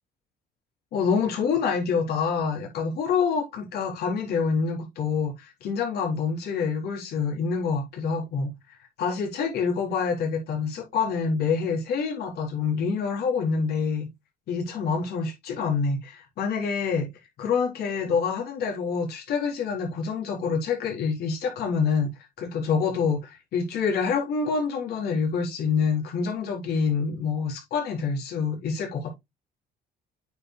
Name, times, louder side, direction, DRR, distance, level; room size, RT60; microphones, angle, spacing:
voice 1, 0.9-8.5 9.0-14.1 14.5-17.1 17.4-22.1 22.4-29.2, left 5 dB, 70° left, 4.0 m, -26 dB
8.8 x 6.7 x 2.2 m
cardioid pair, 110°, 17 cm